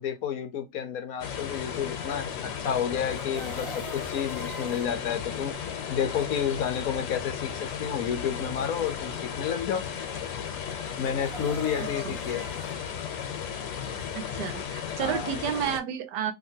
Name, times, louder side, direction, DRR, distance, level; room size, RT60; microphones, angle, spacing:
voice 1, 0.0-5.6 5.9-9.9 11.0-12.5 15.0-15.3, left 8 dB, 70° left, 1.0 m, -30 dB
sound 1, 1.2-15.8, left 8 dB, 90° left, 1.3 m, -35 dB
Chicken rooster, 3.1-4.9 11.0-12.8 15.0-15.1 15.4-15.6, equal, ahead, 0.8 m, -42 dB
voice 2, 11.8-12.2 14.1-16.3, right 9 dB, 85° right, 1.2 m, -31 dB
2.9 x 2.8 x 2.6 m
omnidirectional pair, 1.8 m